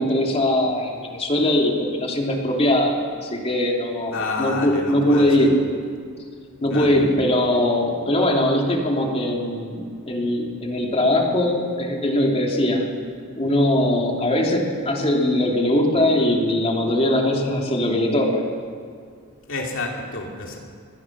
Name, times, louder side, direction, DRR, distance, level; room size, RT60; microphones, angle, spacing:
voice 1, 0.0-5.5 6.6-12.9 13.4-18.4, left 1 dB, 30° left, 0 dB, 3.0 m, -21 dB
voice 2, 4.1-5.5 6.7-7.0 19.5-20.6, left 3 dB, 60° left, 0 dB, 2.9 m, -29 dB
24.5 x 20.0 x 6.1 m, 2.1 s
head